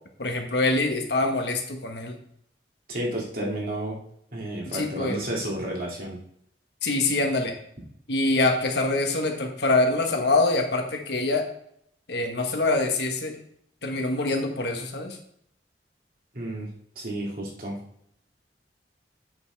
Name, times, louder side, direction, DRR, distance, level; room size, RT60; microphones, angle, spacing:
voice 1, 0.2-2.2 4.7-5.2 6.8-7.6 8.1-11.5 12.1-13.4 13.8-15.2, left 2 dB, 75° left, 3 dB, 1.5 m, -25 dB
voice 2, 2.9-4.0 4.3-6.2 16.3-16.7 17.0-17.8, right 1 dB, 55° right, -3 dB, 2.5 m, -31 dB
8.1 x 7.2 x 3.5 m, 0.68 s
head